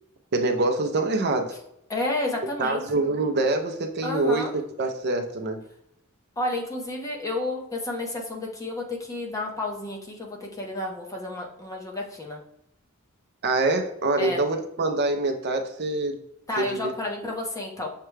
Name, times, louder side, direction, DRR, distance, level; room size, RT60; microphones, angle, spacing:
voice 1, 0.3-1.5 2.6-5.6 13.4-16.2 16.6-16.9, right 2 dB, 50° right, 5 dB, 0.5 m, -25 dB
voice 2, 1.9-2.8 4.0-4.5 6.4-12.4 14.2-14.4 16.5-17.9, left 2 dB, 15° left, -1 dB, 0.7 m, -31 dB
6.5 x 2.3 x 3.1 m, 0.78 s
head